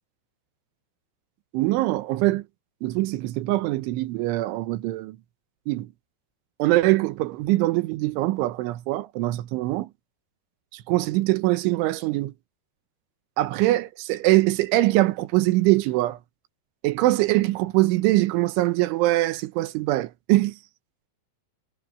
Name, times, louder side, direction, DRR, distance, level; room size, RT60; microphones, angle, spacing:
voice 1, 1.5-2.4 2.8-5.2 5.7-5.9 6.6-9.9 10.7-12.3 13.4-16.2 16.8-20.6, right 18 dB, 90° right, 3.4 m, -23 dB
omnidirectional pair, 5.4 m